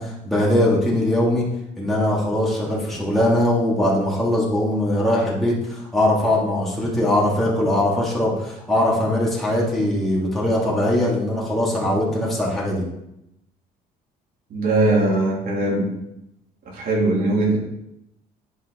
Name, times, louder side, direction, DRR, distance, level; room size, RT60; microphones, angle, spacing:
voice 1, 0.0-1.4 1.8-12.8, left 1 dB, ahead, -6 dB, 2.8 m, -21 dB
voice 2, 14.5-15.9 16.6-17.6, right 2 dB, 60° right, -3 dB, 3.1 m, -20 dB
9.6 x 5.4 x 4.1 m, 0.84 s
cardioid pair, 110°, 17 cm